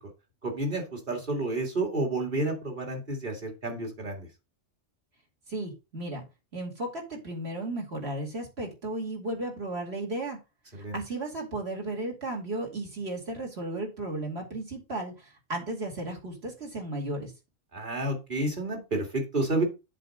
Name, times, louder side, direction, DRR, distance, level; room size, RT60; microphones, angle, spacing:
voice 1, 0.4-4.3 10.7-11.0 17.7-19.6, right 2 dB, 40° right, 1 dB, 2.5 m, -30 dB
voice 2, 5.5-6.2 6.5-10.4 10.9-17.3, right 2 dB, 60° right, 1 dB, 2.6 m, -34 dB
7.5 x 3.8 x 6.4 m, 0.27 s
omnidirectional pair, 1.2 m